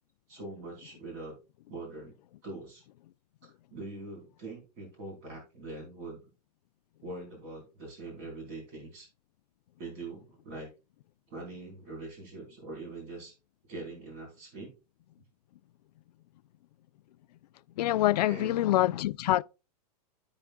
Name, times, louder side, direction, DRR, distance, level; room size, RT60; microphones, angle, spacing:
voice 1, 0.3-1.3 1.7-2.1 2.4-2.8 3.4-6.2 7.0-9.1 9.8-10.7 11.3-13.3 13.7-14.7 18.3-18.7, right 2 dB, 45° right, 4.2 m, -43 dB
voice 2, 17.8-19.4, left 14 dB, 75° left, 0.4 m, -25 dB
13.5 x 4.9 x 2.3 m
hypercardioid pair, 140°, 21 cm